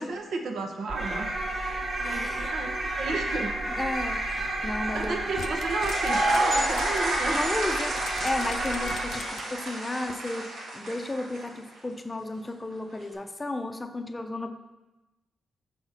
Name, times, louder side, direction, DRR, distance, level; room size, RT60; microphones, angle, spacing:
voice 1, 0.0-3.5 4.9-7.4, right 3 dB, 70° right, 3 dB, 0.8 m, -33 dB
sound 1, 0.9-9.5, right 1 dB, 50° right, 1.2 m, -31 dB
voice 2, 2.0-2.5 3.7-5.2 7.3-14.5, left 2 dB, 20° left, 7 dB, 0.6 m, -33 dB
sound 2, 4.9-7.0 7.4-7.5 8.0-9.6 10.1-10.2, left 6 dB, 80° left, 0.4 m, -42 dB
sound 3, 5.7-11.7, right 1 dB, 90° right, 1.4 m, -30 dB
5.9 x 4.9 x 4.0 m, 1.1 s
cardioid pair, 90°, 0 cm